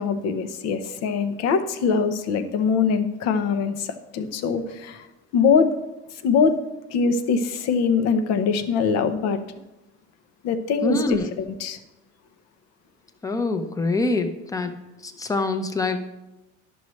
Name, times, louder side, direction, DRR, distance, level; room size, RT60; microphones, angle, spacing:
voice 1, 0.0-5.0 5.3-5.7 6.2-6.5 6.9-9.4 10.4-11.8, left 5 dB, 60° left, 9 dB, 0.8 m, -22 dB
voice 2, 10.8-11.3 13.2-14.7 15.0-16.1, left 2 dB, 10° left, 7 dB, 0.7 m, -25 dB
11.0 x 6.2 x 3.1 m, 0.96 s
cardioid pair, 125°, 29 cm